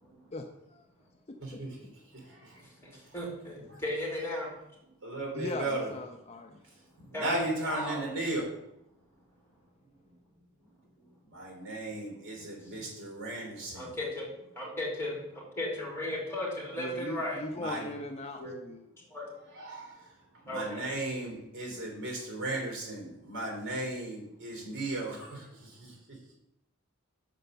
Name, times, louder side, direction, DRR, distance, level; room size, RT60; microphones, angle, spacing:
voice 1, 0.3-0.8 1.3-1.6 5.3-6.6 16.8-18.8, left 2 dB, 30° left, 4 dB, 0.5 m, -39 dB
voice 2, 1.4-2.6 3.0-3.1 3.7-3.8 5.0-5.9 7.0-8.5 11.2-13.9 17.5-17.9 19.5-20.1 20.4-26.4, right 2 dB, 50° right, 0 dB, 3.4 m, -36 dB
voice 3, 2.6-4.5 7.1-8.2 13.7-14.3 14.5-17.4 18.4-18.6 19.1-19.3 20.5-20.9, left 1 dB, 10° left, -3 dB, 2.6 m, -36 dB
6.7 x 4.9 x 6.7 m, 0.83 s
head